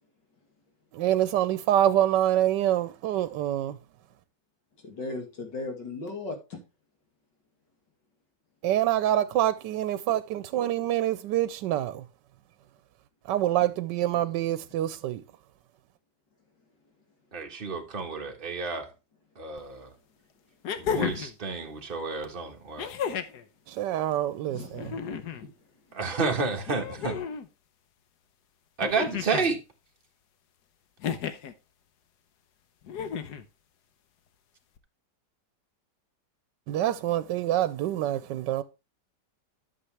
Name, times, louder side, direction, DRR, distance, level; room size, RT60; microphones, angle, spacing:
voice 1, 1.0-3.7 8.6-11.9 13.3-15.2 23.8-24.8 36.7-38.6, right 12 dB, 85° right, 1.3 m, -26 dB
voice 2, 4.8-6.6 14.1-14.4 24.5-24.8 25.1-25.5, left 3 dB, 90° left, 3.0 m, -37 dB
voice 3, 17.3-18.9 19.4-19.9 20.8-22.9 25.9-27.2 28.8-29.6, right 4 dB, 30° right, 1.5 m, -30 dB
sound 1, 19.6-19.7 20.6-21.4 22.8-23.4 24.7-25.4 26.7-27.5 28.8-29.5 31.0-31.5 32.9-33.5 34.8-34.9, left 7 dB, 70° left, 1.4 m, -32 dB
11.5 x 6.9 x 3.3 m
omnidirectional pair, 1.9 m